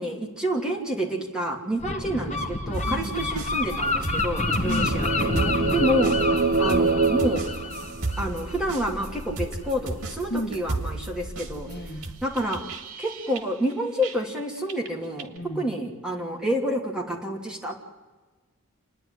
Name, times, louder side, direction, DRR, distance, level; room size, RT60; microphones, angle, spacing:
voice 1, 0.0-5.3 5.7-6.2 6.6-7.4 8.2-11.7 12.2-12.6 13.0-17.8, equal, 5° right, -2 dB, 2.7 m, -28 dB
Gull seagull, 1.8-9.3, left 2 dB, 30° left, 1.6 m, -29 dB
sound 1, 2.7-14.4 14.7-15.4, right 2 dB, 90° right, 2.1 m, -35 dB
voice 2, 2.8-3.3 4.5-6.0 10.3-10.6 11.7-12.1 15.3-15.6, equal, 50° left, 2 dB, 2.0 m, -34 dB
sound 2, 4.6-8.5, right 4 dB, 40° right, 0.9 m, -25 dB
29.0 x 10.5 x 9.8 m, 1.3 s
head